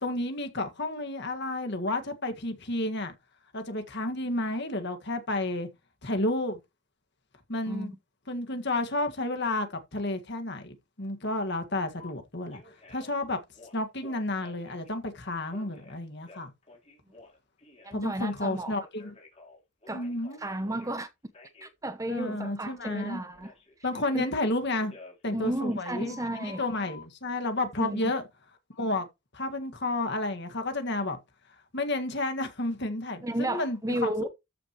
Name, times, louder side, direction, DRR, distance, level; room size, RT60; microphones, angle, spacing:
voice 1, 0.0-3.1 3.5-5.7 6.0-6.6 7.5-7.9 8.3-12.6 12.9-13.4 13.7-16.5 17.9-19.1 19.9-20.4 22.1-23.2 23.8-25.0 25.2-28.2 28.8-29.1 29.3-31.2 31.7-34.1, left 2 dB, 50° left, 1.8 m, -31 dB
voice 2, 7.7-8.0 17.8-18.7 19.9-20.1 20.4-21.1 21.6-23.5 24.1-24.3 25.3-26.6 27.8-28.1 33.2-34.3, right 1 dB, 15° right, 0.8 m, -33 dB
Telephone, 12.0-12.1 12.5-13.2 13.5-14.9 15.5-17.9 18.3-21.0 21.3-21.7 23.0-24.3 24.7-27.0, left 4 dB, 30° left, 3.4 m, -51 dB
13.5 x 5.9 x 3.0 m
head